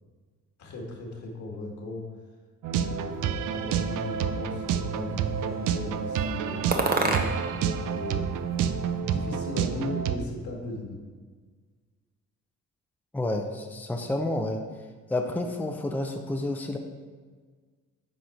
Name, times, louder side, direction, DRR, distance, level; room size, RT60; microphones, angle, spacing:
voice 1, 0.6-2.1 2.7-11.0, left 2 dB, 70° left, 0 dB, 1.9 m, -38 dB
sound 1, 2.6-10.2, right 8 dB, 90° right, 0.5 m, -29 dB
sound 2, 3.5-4.5 5.2-5.8 6.7-7.6 7.9-9.0, right 3 dB, 30° right, 1.0 m, -31 dB
voice 2, 13.1-14.6 15.1-16.8, left 1 dB, 5° left, 3 dB, 0.6 m, -29 dB
10.0 x 4.1 x 4.5 m, 1.5 s
cardioid pair, 90°, 30 cm